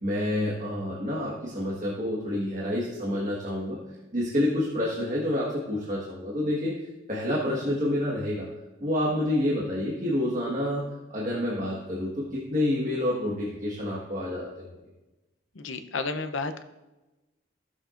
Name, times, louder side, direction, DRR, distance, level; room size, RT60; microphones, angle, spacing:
voice 1, 0.0-3.8 4.1-6.7 7.1-8.5 8.8-10.8 11.1-14.8, left 1 dB, 40° right, -6 dB, 1.5 m, -28 dB
voice 2, 15.6-16.6, left 3 dB, 85° left, 8 dB, 0.7 m, -32 dB
15.0 x 7.2 x 2.6 m, 1.1 s
head